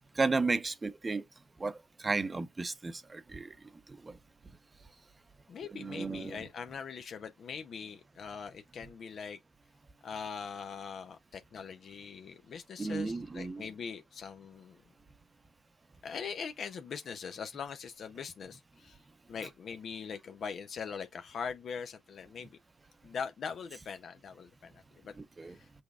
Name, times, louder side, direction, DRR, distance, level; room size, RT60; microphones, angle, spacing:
voice 1, 0.1-1.2 1.6-3.6 3.9-4.2 5.7-6.5 12.8-13.7 25.2-25.6, right 3 dB, 25° right, 0.7 m, -34 dB
voice 2, 5.5-9.4 10.0-14.8 16.0-19.0 19.3-22.6 23.0-24.7 25.0-25.1 25.5-25.7, left 6 dB, 55° left, 0.6 m, -42 dB
6.1 x 3.4 x 2.3 m
cardioid pair, 90°, 0 cm